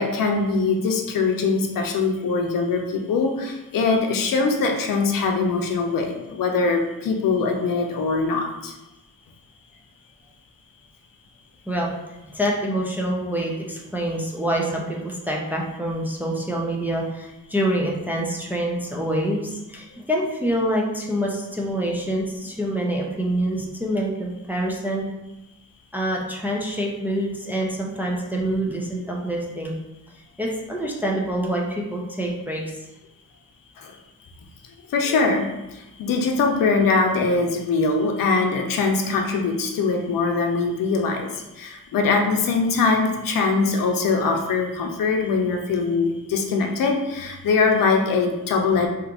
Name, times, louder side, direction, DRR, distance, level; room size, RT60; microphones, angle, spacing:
voice 1, 0.0-8.7 33.8-33.9 34.9-35.5 36.0-41.3 41.6-48.9, left 4 dB, 85° left, 2 dB, 0.6 m, -22 dB
voice 2, 12.3-25.1 25.9-29.7 30.4-32.6, right 1 dB, 5° right, -2 dB, 0.3 m, -26 dB
2.8 x 2.5 x 3.5 m, 0.98 s
wide cardioid pair, 175°, 33 cm